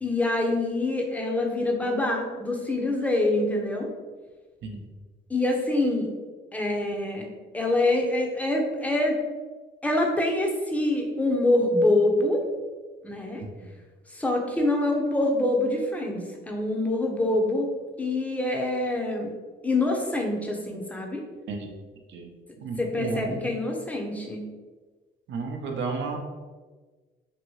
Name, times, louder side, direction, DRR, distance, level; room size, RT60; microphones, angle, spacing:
voice 1, 0.0-3.9 5.3-6.1 6.5-7.3 7.5-9.2 9.8-12.4 13.0-13.4 14.1-17.7 18.0-19.3 19.6-21.2 22.8-24.5, left 2 dB, 5° left, 0 dB, 0.6 m, -25 dB
voice 2, 22.6-23.4 25.3-26.2, right 4 dB, 70° right, 2 dB, 0.5 m, -32 dB
2.8 x 2.6 x 3.0 m, 1.3 s
cardioid pair, 90°, 20 cm